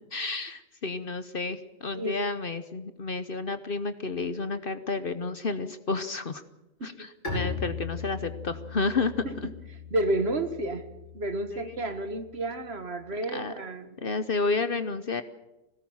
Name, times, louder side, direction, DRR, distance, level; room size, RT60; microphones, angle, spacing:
voice 1, 0.1-6.4 6.8-9.5 11.5-11.8 13.3-13.5 14.0-15.2, left 3 dB, 45° left, 11 dB, 1.0 m, -31 dB
Bowed string instrument, 7.2-12.8, left 4 dB, 65° left, 7.7 m, -39 dB
voice 2, 9.9-10.8 11.1-13.9, right 1 dB, 50° right, 9 dB, 1.7 m, -31 dB
20.5 x 18.0 x 7.3 m, 1.0 s
omnidirectional pair, 1.4 m